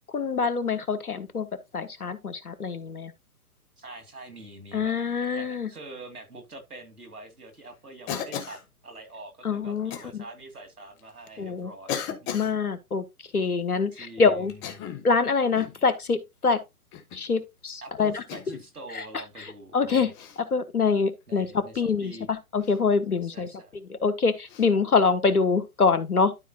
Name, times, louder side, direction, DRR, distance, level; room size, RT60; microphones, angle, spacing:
voice 1, 0.1-1.5 1.7-3.1 4.7-5.7 9.4-10.2 11.4-11.7 12.1-13.0 13.3-14.5 15.0-16.6 17.1-18.2 18.9-20.1 20.4-26.3, left 4 dB, 85° left, 1.5 m, -25 dB
voice 2, 3.8-4.9 5.3-12.5 13.9-14.6 17.8-20.1 21.3-22.3 23.1-23.7, right 2 dB, 90° right, 2.4 m, -45 dB
Cough, 8.1-8.7 9.9-10.1 11.0-11.1 11.9-12.5 14.5-15.1 15.5-15.8 16.9-17.3 18.3-18.7 20.1-20.4 22.6-22.8 24.5-24.7, left 8 dB, 25° left, 1.4 m, -35 dB
12.5 x 4.6 x 2.8 m
figure-of-eight pair, 120°, 44 cm